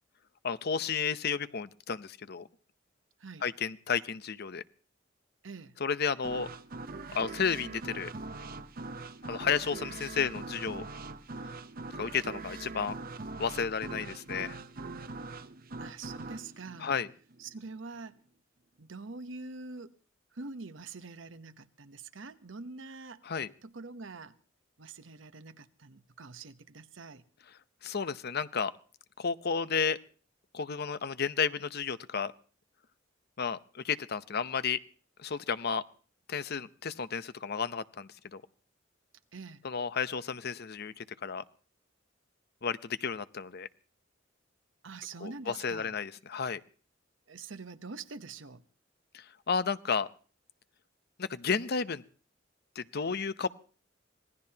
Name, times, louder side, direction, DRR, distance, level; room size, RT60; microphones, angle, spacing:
voice 1, 0.4-2.5 3.4-4.6 5.8-6.5 7.1-8.1 9.2-10.8 11.9-13.0 13.4-14.6 16.8-17.1 23.2-23.5 27.8-28.7 29.2-30.0 30.5-32.3 33.4-34.8 35.2-35.8 36.3-38.4 39.6-41.4 42.6-43.7 45.2-46.6 49.1-50.1 51.2-52.0 52.8-53.5, left 6 dB, 55° left, 0.8 m, -32 dB
voice 2, 5.4-5.7 15.8-17.0 17.4-18.1 18.8-20.0 20.3-23.2 23.6-24.4 24.8-27.2 39.3-39.6 44.8-45.9 47.3-48.6, right 4 dB, 75° right, 1.0 m, -45 dB
sound 1, 6.2-17.7, right 3 dB, 50° right, 0.8 m, -42 dB
26.0 x 19.0 x 2.9 m
head